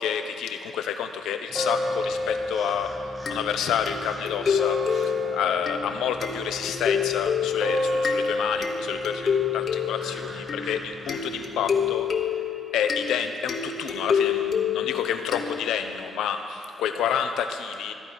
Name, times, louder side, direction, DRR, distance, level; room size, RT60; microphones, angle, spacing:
voice 1, 0.0-2.9 3.3-12.1 12.7-17.9, left 8 dB, 75° left, 7 dB, 0.7 m, -29 dB
sound 1, 1.5-11.9, left 1 dB, 35° right, 1.7 m, -32 dB
sound 2, 3.3-16.0, left 7 dB, 55° left, 1.1 m, -29 dB
13.5 x 4.7 x 9.0 m, 2.8 s
hypercardioid pair, 40°, 0 cm